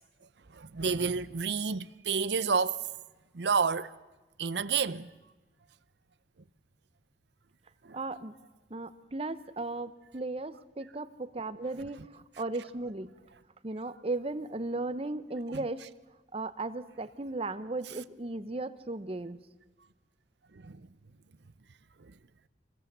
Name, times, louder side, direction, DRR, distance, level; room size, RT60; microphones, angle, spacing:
voice 1, 0.5-2.8 3.3-3.9 4.4-5.1 7.8-8.0 20.6-20.8 22.0-22.1, right 5 dB, 65° right, 0.7 m, -29 dB
voice 2, 7.9-8.3 8.7-13.1 13.6-15.9 16.3-19.4, right 2 dB, 30° right, 0.8 m, -36 dB
26.0 x 21.0 x 6.8 m
head